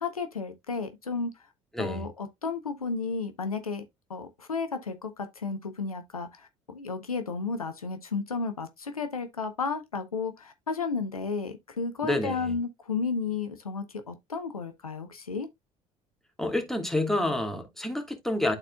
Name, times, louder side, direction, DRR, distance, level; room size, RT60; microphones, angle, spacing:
voice 1, 0.0-1.3 1.8-3.8 4.1-15.5, left 4 dB, 85° left, 0.6 m, -33 dB
voice 2, 1.7-2.0 12.0-12.5 16.4-18.5, left 1 dB, ahead, 1.6 m, -28 dB
11.5 x 4.2 x 2.2 m
figure-of-eight pair, 55°, 18 cm